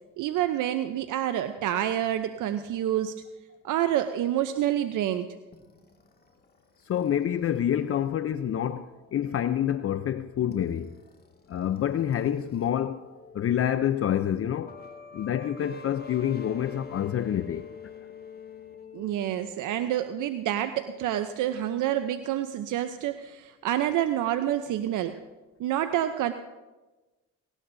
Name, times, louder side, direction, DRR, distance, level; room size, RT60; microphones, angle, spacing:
voice 1, 0.2-3.2 3.6-5.3 18.9-25.2 25.6-26.3, right 11 dB, 70° right, 0.8 m, -28 dB
sound 1, 5.5-12.7 13.0-19.4, left 5 dB, 30° left, 2.1 m, -49 dB
voice 2, 6.9-10.9 11.5-13.1 13.3-14.8 15.1-17.7, left 10 dB, 45° left, 0.6 m, -27 dB
19.0 x 18.0 x 2.7 m
supercardioid pair, 65°, 32 cm